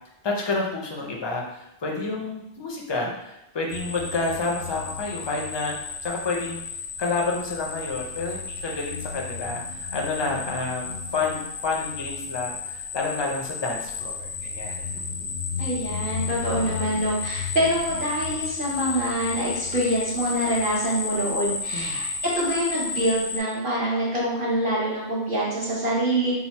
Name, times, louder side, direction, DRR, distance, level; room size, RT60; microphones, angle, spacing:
voice 1, 0.2-5.7 6.0-6.6 7.0-14.9 21.7-22.0, left 3 dB, 35° left, -1 dB, 0.4 m, -29 dB
sound 1, 3.7-23.4, left 5 dB, 65° left, 0.7 m, -32 dB
voice 2, 15.6-26.3, right 1 dB, 55° right, -7 dB, 1.0 m, -25 dB
3.0 x 2.0 x 4.1 m, 0.87 s
omnidirectional pair, 1.1 m